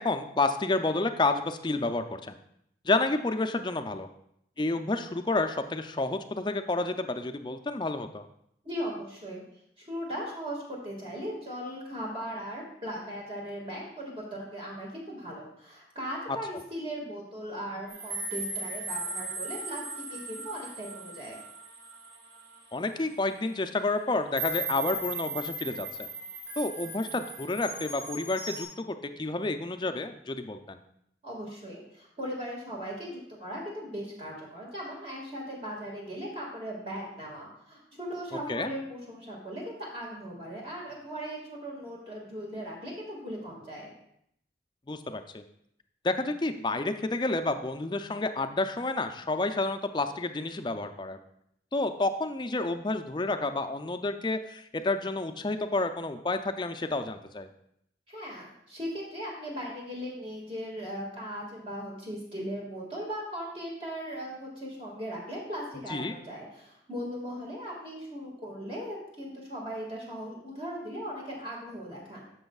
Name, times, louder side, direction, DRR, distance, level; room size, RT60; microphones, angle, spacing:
voice 1, 0.0-2.4 2.8-4.1 4.6-8.3 22.7-26.1 26.6-30.8 38.3-38.7 44.9-45.4 46.0-51.2 51.7-57.5 65.9-66.2, left 2 dB, 25° left, 8 dB, 0.4 m, -30 dB
voice 2, 8.6-9.4 9.8-21.4 31.2-43.9 58.1-72.3, equal, 30° right, -3 dB, 1.9 m, -38 dB
sound 1, 17.9-23.0 23.5-23.6 24.4-28.6, right 2 dB, 65° right, 2.8 m, -37 dB
13.0 x 6.2 x 2.4 m, 0.74 s
head